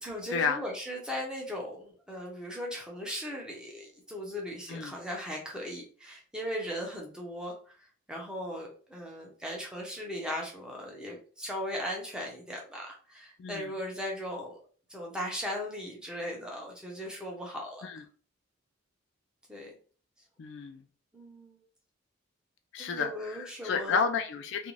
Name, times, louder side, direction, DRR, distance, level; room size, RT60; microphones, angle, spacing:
voice 1, 0.0-7.5 8.1-14.6 14.9-17.8 19.5-19.7 21.1-21.6 22.8-24.0, equal, 5° right, -2 dB, 0.6 m, -38 dB
voice 2, 13.4-13.7 17.8-18.0 20.4-20.8 22.7-24.7, left 5 dB, 60° left, 6 dB, 0.3 m, -31 dB
2.5 x 2.3 x 3.0 m, 0.41 s
head